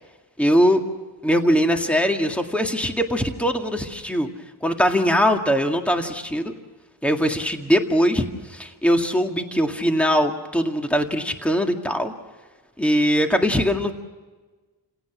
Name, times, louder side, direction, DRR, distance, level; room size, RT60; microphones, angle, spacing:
voice 1, 0.4-0.8 1.2-4.3 4.6-6.5 7.0-12.1 12.8-13.9, equal, 5° left, 4 dB, 2.0 m, -21 dB
30.0 x 17.5 x 6.1 m, 1.3 s
wide cardioid pair, 100°, 41 cm